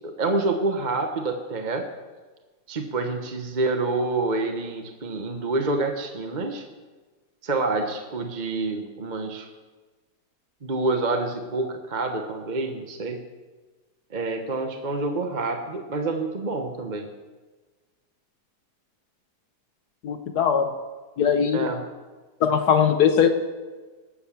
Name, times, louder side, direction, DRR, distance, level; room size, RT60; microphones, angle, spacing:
voice 1, 0.0-1.9 2.7-6.6 7.4-9.5 10.6-13.2 14.1-17.1 21.5-21.8, right 3 dB, 30° right, 4 dB, 1.0 m, -27 dB
voice 2, 20.0-20.7 21.2-21.7 22.4-23.3, left 7 dB, 70° left, 7 dB, 1.4 m, -20 dB
19.5 x 7.7 x 7.0 m, 1.3 s
omnidirectional pair, 1.8 m